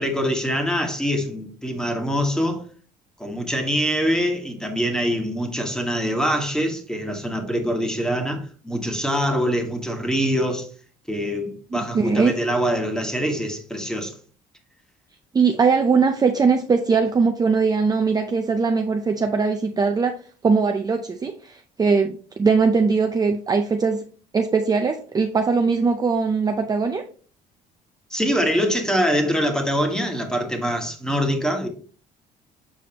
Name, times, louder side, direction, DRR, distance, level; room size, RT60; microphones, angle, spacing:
voice 1, 0.0-2.6 3.2-10.7 11.1-14.2 28.1-31.7, equal, 5° left, 1.4 m, -24 dB
voice 2, 11.7-12.4 15.3-24.0 24.3-27.0, right 5 dB, 25° right, 0.5 m, -21 dB
6.9 x 4.9 x 2.9 m
cardioid pair, 110°, 17 cm